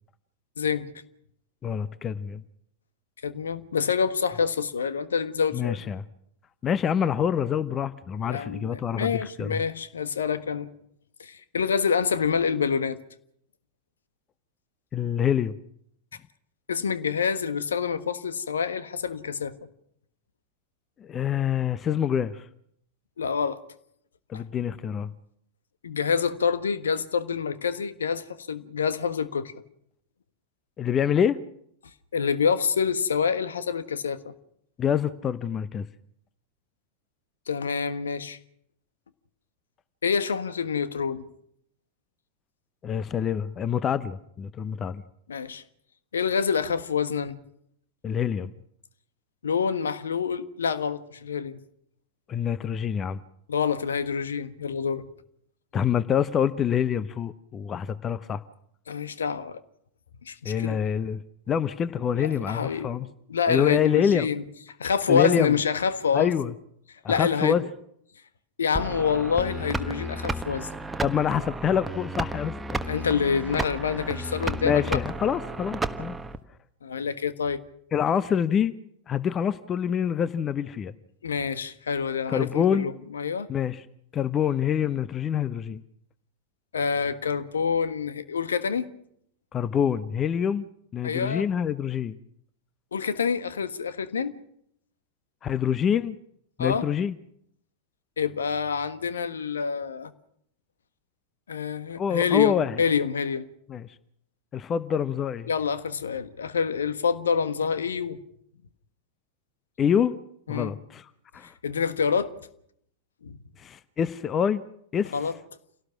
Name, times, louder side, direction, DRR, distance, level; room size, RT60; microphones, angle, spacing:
voice 1, 1.6-2.4 5.5-6.0 6.6-9.6 14.9-15.5 21.0-22.4 24.3-25.1 30.8-31.4 34.8-35.9 42.8-45.0 48.0-48.5 52.3-53.2 55.7-58.4 60.4-61.2 61.5-63.1 63.5-64.3 65.1-65.5 66.1-66.5 67.0-67.6 71.0-72.8 74.6-76.2 77.9-78.7 79.1-80.9 82.3-82.9 83.5-83.8 84.1-85.8 89.5-90.7 90.9-92.2 95.4-96.2 96.6-97.2 102.0-102.8 103.7-103.9 104.5-105.5 109.8-110.1 110.5-111.1 111.3-111.5 113.6-114.6 114.9-115.2, left 8 dB, 25° left, 0.9 m, -26 dB
voice 2, 3.2-5.7 8.2-10.7 11.2-13.0 16.7-19.6 23.2-23.6 24.3-24.4 25.8-29.5 32.1-34.3 37.5-38.4 40.0-41.3 45.3-45.6 46.1-47.4 49.4-51.6 53.5-55.0 58.9-59.6 60.2-60.8 62.1-63.0 63.3-64.4 64.8-66.3 67.1-67.6 68.6-70.7 72.9-75.0 76.8-77.6 81.2-83.5 86.7-88.9 91.0-91.4 92.9-94.4 96.6-96.8 98.2-100.1 101.5-103.4 105.5-108.2 110.5-110.7 111.6-112.3 113.2-113.4 115.1-115.3, left 6 dB, 70° left, 1.4 m, -27 dB
sound 1, 68.7-76.4, right 2 dB, 10° right, 1.3 m, -33 dB
28.0 x 18.0 x 6.1 m
figure-of-eight pair, 90°, 0 cm